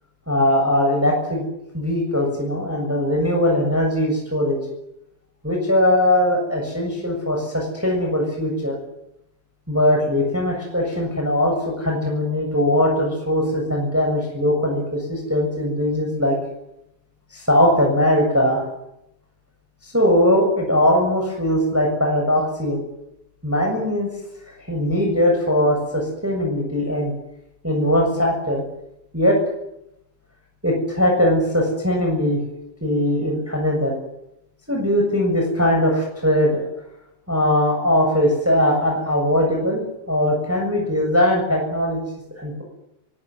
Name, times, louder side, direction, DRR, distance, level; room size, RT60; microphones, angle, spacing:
voice 1, 0.3-1.4 1.7-4.6 5.4-8.8 9.7-16.4 17.3-18.6 19.8-22.8 23.4-24.1 24.7-27.1 27.6-28.6 29.1-29.4 30.6-32.4 32.8-33.9 34.7-36.6 37.3-42.0 42.4-42.6, left 1 dB, 5° right, 1 dB, 7.0 m, -20 dB
23.5 x 20.0 x 9.7 m, 0.81 s
omnidirectional pair, 4.0 m